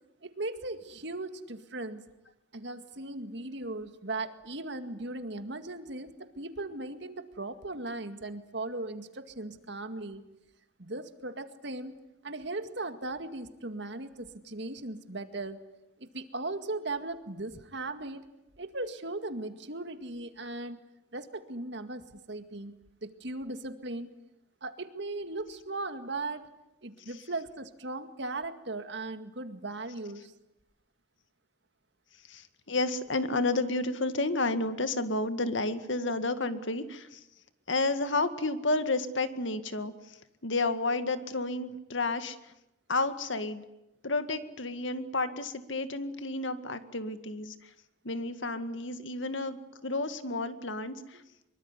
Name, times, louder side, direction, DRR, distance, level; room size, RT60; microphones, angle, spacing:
voice 1, 0.2-2.1 2.5-10.2 10.8-15.6 16.0-18.2 18.6-20.8 21.1-22.7 23.0-24.1 24.6-26.5 26.8-30.3, right 2 dB, 60° right, 9 dB, 2.1 m, -38 dB
voice 2, 32.3-37.2 37.7-42.4 42.9-43.6 44.0-47.7 48.0-51.2, left 2 dB, 70° left, 10 dB, 2.0 m, -31 dB
25.0 x 23.5 x 9.9 m, 0.87 s
head